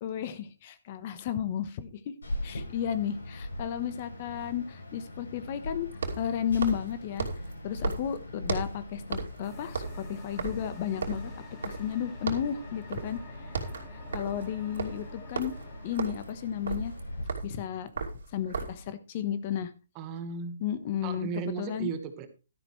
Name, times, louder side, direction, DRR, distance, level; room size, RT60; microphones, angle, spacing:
voice 1, 0.0-2.1 2.4-5.9 6.2-7.3 7.6-11.3 11.6-13.2 13.9-15.5 15.8-16.9 17.4-17.9 18.3-19.7 20.6-21.9, left 9 dB, 35° left, 12 dB, 1.1 m, -33 dB
sound 1, 2.2-17.2, left 1 dB, 90° left, 8.0 m, -41 dB
sound 2, 2.6-2.7 5.9-8.8 9.1-9.4 9.7-12.0 12.3-12.6 12.9-13.2 13.4-18.9, right 4 dB, 75° right, 2.7 m, -36 dB
sound 3, 9.4-16.0, left 3 dB, 20° left, 2.2 m, -51 dB
voice 2, 19.9-20.6 21.0-22.3, right 6 dB, 25° right, 9 dB, 1.3 m, -35 dB
12.5 x 10.5 x 3.2 m, 0.31 s
hypercardioid pair, 155°, 0 cm